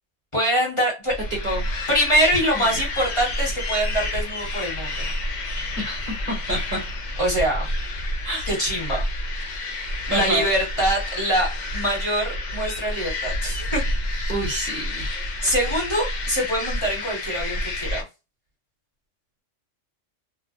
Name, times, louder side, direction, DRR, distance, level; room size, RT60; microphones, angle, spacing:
voice 1, 0.3-1.1 1.9-5.1 7.2-7.7 8.5-9.1 10.1-13.8 15.4-18.0, equal, 25° left, 1.2 m, -24 dB
sound 1, 1.1-18.0, left 1 dB, 55° left, 0.5 m, -29 dB
voice 2, 5.8-6.8 8.2-8.5 10.1-10.5 14.3-15.1, right 1 dB, 40° right, 1.0 m, -28 dB
2.4 x 2.1 x 2.6 m
omnidirectional pair, 1.3 m